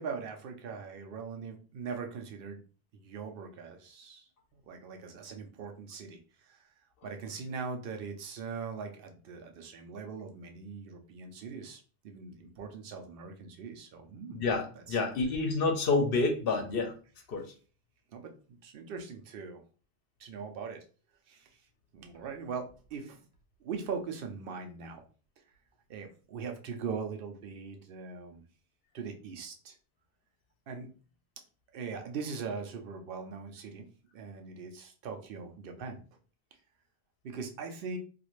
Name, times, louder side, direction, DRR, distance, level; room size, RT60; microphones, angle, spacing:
voice 1, 0.0-2.6 2.9-6.7 7.0-14.4 14.7-15.0 18.1-19.6 20.2-20.8 21.3-21.6 21.9-23.2 23.6-25.0 25.9-28.4 28.9-29.8 30.7-30.9 31.7-33.9 34.1-36.0 37.2-38.0, right 5 dB, 65° right, 5 dB, 0.8 m, -41 dB
voice 2, 14.3-16.9 17.3-17.5, left 3 dB, 70° left, 4 dB, 0.8 m, -28 dB
2.4 x 2.4 x 3.0 m, 0.38 s
omnidirectional pair, 1.0 m